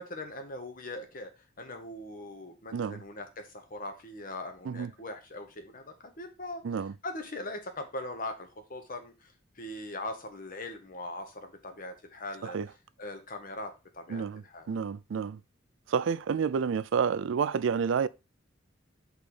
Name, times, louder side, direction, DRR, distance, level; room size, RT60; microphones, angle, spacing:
voice 1, 0.0-6.6 7.0-12.6 13.0-14.7, left 2 dB, 45° left, 1.2 m, -41 dB
voice 2, 14.1-15.4 15.9-18.1, right 6 dB, 75° right, 0.4 m, -29 dB
5.4 x 4.1 x 4.9 m
head